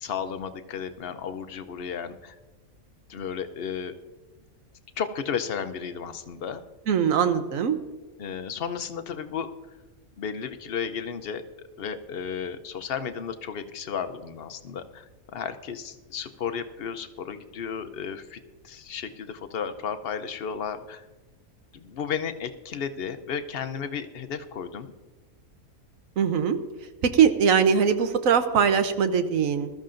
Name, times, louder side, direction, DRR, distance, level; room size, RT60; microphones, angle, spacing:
voice 1, 0.0-2.4 3.1-3.9 5.0-6.6 8.2-9.5 10.2-11.4 11.8-21.0 21.7-24.9, left 7 dB, 55° left, 9 dB, 0.8 m, -33 dB
voice 2, 6.9-7.8 26.2-26.6 27.0-29.7, right 7 dB, 75° right, 9 dB, 1.2 m, -21 dB
20.5 x 13.0 x 2.6 m, 1.2 s
omnidirectional pair, 1.5 m